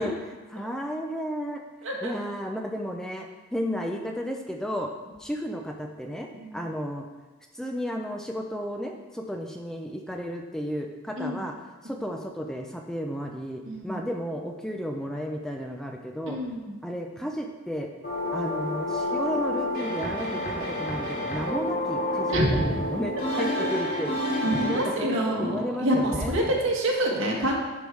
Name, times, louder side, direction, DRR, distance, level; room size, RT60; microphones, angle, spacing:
voice 1, 0.0-1.6 2.0-4.9 5.2-6.3 6.5-7.1 7.5-11.5 11.8-16.4 16.8-17.9 18.3-24.2 24.6-26.3, equal, 5° left, 2 dB, 0.5 m, -33 dB
voice 2, 13.6-14.1 16.3-16.8 22.3-22.6 23.3-23.7 24.4-27.5, right 1 dB, 70° right, -2 dB, 1.6 m, -27 dB
sound 1, 18.0-24.9, left 1 dB, 45° left, 1.9 m, -29 dB
10.5 x 3.6 x 4.7 m, 1.2 s
head